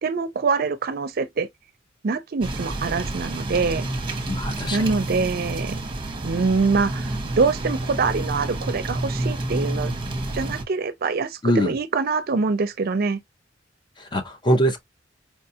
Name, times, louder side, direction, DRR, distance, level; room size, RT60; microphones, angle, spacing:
voice 1, 0.0-1.5 2.0-3.8 4.7-5.8 6.2-9.9 10.3-13.2, right 4 dB, 50° right, 0.5 m, -24 dB
sound 1, 2.4-10.6, right 1 dB, 25° right, 0.8 m, -29 dB
voice 2, 4.3-4.9 11.4-11.8 14.0-14.8, equal, 25° left, 0.7 m, -23 dB
4.6 x 2.3 x 2.7 m
head